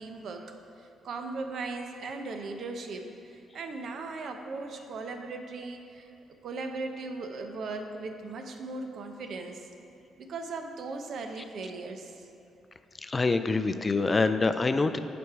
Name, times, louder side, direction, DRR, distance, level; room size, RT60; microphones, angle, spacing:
voice 1, 0.0-6.1 6.4-9.7 10.2-12.3, right 3 dB, 65° right, 5 dB, 0.7 m, -38 dB
voice 2, 13.0-15.0, left 3 dB, 25° left, 10 dB, 0.4 m, -25 dB
8.3 x 5.2 x 4.7 m, 2.7 s
cardioid pair, 90°, 0 cm